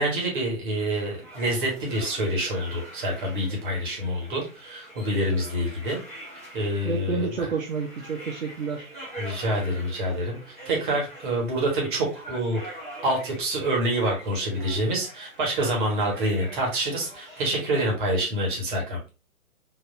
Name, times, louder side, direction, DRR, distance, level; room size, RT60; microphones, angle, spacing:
voice 1, 0.0-6.0 6.5-7.5 9.2-19.0, right 1 dB, 35° right, 0 dB, 1.4 m, -27 dB
sound 1, 0.7-17.9, right 1 dB, 5° left, 0.6 m, -44 dB
voice 2, 6.8-8.9, right 5 dB, 65° right, 1 dB, 0.8 m, -29 dB
3.9 x 2.6 x 2.6 m, 0.30 s
figure-of-eight pair, 130°, 43 cm